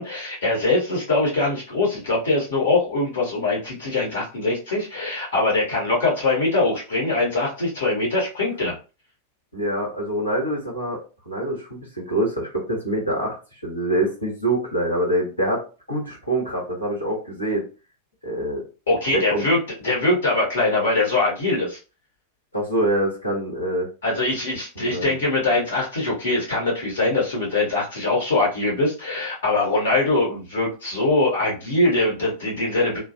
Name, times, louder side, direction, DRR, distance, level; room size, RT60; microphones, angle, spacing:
voice 1, 0.0-8.7 18.9-19.6 19.8-21.8 24.0-33.0, left 2 dB, 65° left, -3 dB, 1.4 m, -22 dB
voice 2, 9.5-11.0 11.2-13.4 13.6-17.6 18.2-18.6 19.1-19.5 22.5-23.9 24.7-25.2, right 1 dB, 85° left, -4 dB, 1.3 m, -25 dB
3.2 x 2.2 x 2.5 m, 0.33 s
figure-of-eight pair, 90°, 0 cm